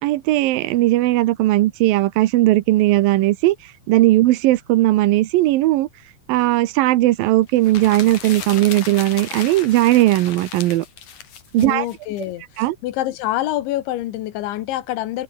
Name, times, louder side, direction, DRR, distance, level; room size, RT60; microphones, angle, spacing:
voice 1, 0.0-5.9 6.3-10.9 11.5-11.9 12.6-12.8, right 16 dB, 80° right, 2.1 m, -17 dB
sound 1, 7.5-12.2, left 8 dB, 45° left, 3.5 m, -35 dB
voice 2, 11.6-15.2, left 14 dB, 90° left, 3.7 m, -26 dB
omnidirectional pair, 5.2 m